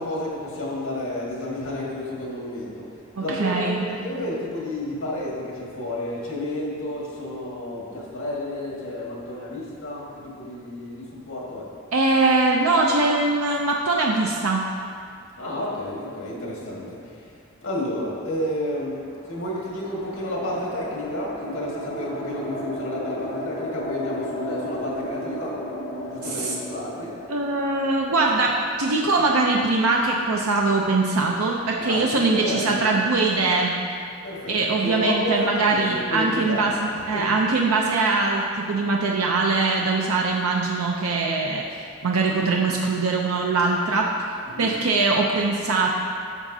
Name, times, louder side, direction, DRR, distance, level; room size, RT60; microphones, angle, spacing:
voice 1, 0.0-2.9 3.2-11.7 15.4-17.2 17.6-19.0 19.3-25.6 26.0-27.1 29.1-29.2 31.8-32.8 34.2-37.4 44.5-44.7, left 1 dB, 70° left, -4 dB, 1.8 m, -31 dB
voice 2, 3.2-3.9 11.9-14.7 26.2-26.5 27.3-33.8 34.5-36.7 37.1-44.1 44.6-45.9, right 3 dB, 90° right, -1 dB, 0.6 m, -22 dB
sound 1, 18.9-29.3, equal, 25° left, 1.3 m, -34 dB
10.5 x 6.6 x 2.7 m, 2.4 s
head